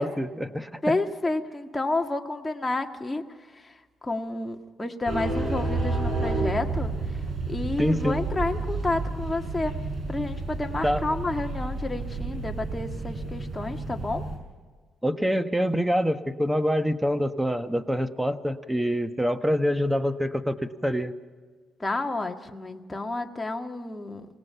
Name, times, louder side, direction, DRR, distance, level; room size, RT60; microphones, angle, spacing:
voice 1, 0.0-1.0 7.8-8.2 10.8-11.0 15.0-21.1, equal, 5° right, 9 dB, 1.2 m, -26 dB
voice 2, 0.8-7.2 7.5-9.8 10.1-14.3 21.8-24.3, left 2 dB, 15° left, 4 dB, 1.7 m, -30 dB
sound 1, 5.1-14.4, right 3 dB, 50° right, 6.9 m, -30 dB
28.0 x 18.5 x 5.7 m, 1.4 s
cardioid pair, 90°, 0 cm